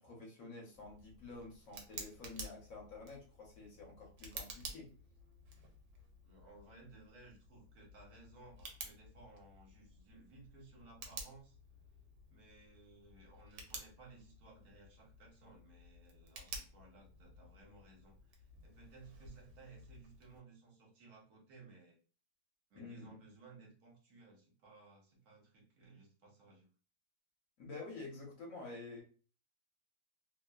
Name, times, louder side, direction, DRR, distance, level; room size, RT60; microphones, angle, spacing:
voice 1, 0.0-4.9 22.8-23.1 27.6-29.0, left 3 dB, 60° left, -2 dB, 1.1 m, -49 dB
Tick, 0.7-20.4, right 3 dB, 85° right, 1.2 m, -53 dB
voice 2, 6.2-11.6 12.3-22.0 22.7-26.7, right 3 dB, 70° right, -1 dB, 1.3 m, -59 dB
3.0 x 2.1 x 2.2 m, 0.39 s
omnidirectional pair, 1.7 m